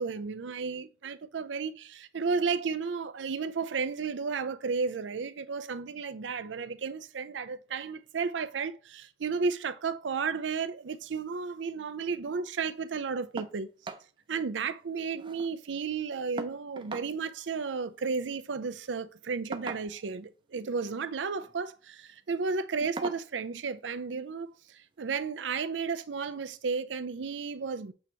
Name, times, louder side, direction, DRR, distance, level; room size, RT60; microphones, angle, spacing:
voice 1, 0.0-13.7 14.3-27.9, right 5 dB, 85° right, 0.5 m, -33 dB
sound 1, 13.4-13.6 13.8-14.1 14.4-14.5 14.8-15.5 16.4-17.1 18.4-18.6 19.5-20.2 21.2-21.5 22.0-22.2 23.0-23.3 24.5-24.6 25.1-25.2, right 3 dB, 25° right, 0.6 m, -40 dB
8.1 x 2.9 x 4.5 m
head